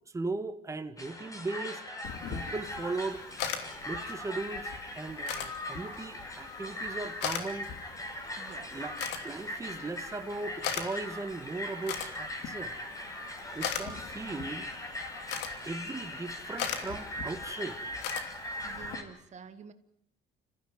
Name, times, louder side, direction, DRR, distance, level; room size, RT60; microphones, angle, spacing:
voice 1, 0.1-1.8 2.3-3.2 3.8-7.7 8.7-9.0 9.2-12.7 13.5-14.7 15.6-17.8, right 3 dB, 20° right, 8 dB, 1.6 m, -38 dB
sound 1, 1.0-19.0, left 1 dB, 20° left, 4.8 m, -40 dB
sound 2, 2.0-19.0, left 8 dB, 85° left, 2.9 m, -41 dB
voice 2, 8.4-8.7 18.6-19.7, right 6 dB, 45° right, 10 dB, 1.5 m, -49 dB
26.5 x 15.0 x 9.6 m, 0.78 s
cardioid pair, 110°, 17 cm